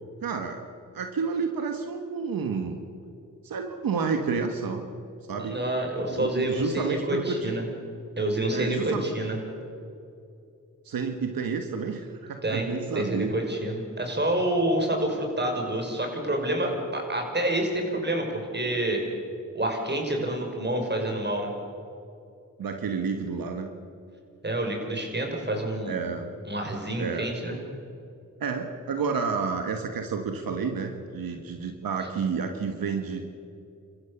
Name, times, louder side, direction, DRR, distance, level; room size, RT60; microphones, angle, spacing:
voice 1, 0.2-0.6 0.9-2.8 3.4-4.8 5.3-5.6 6.1-7.6 8.5-9.0 10.8-13.3 22.6-23.7 25.9-26.3 27.0-27.3 28.4-33.3, right 5 dB, 85° right, 5 dB, 1.5 m, -30 dB
voice 2, 5.4-7.7 8.2-9.4 12.4-19.0 19.5-21.5 24.4-26.0 26.5-27.6, right 1 dB, 30° right, 2 dB, 6.1 m, -28 dB
28.5 x 14.5 x 7.2 m, 2.6 s
cardioid pair, 50°, 34 cm